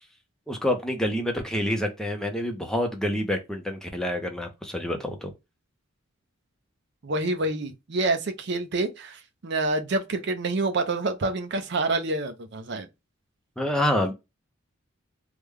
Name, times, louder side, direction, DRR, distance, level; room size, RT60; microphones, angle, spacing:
voice 1, 0.5-5.3 13.6-14.1, left 1 dB, 5° left, 0.5 m, -27 dB
voice 2, 7.0-12.9, right 2 dB, 50° right, 0.5 m, -27 dB
3.3 x 2.2 x 3.4 m
head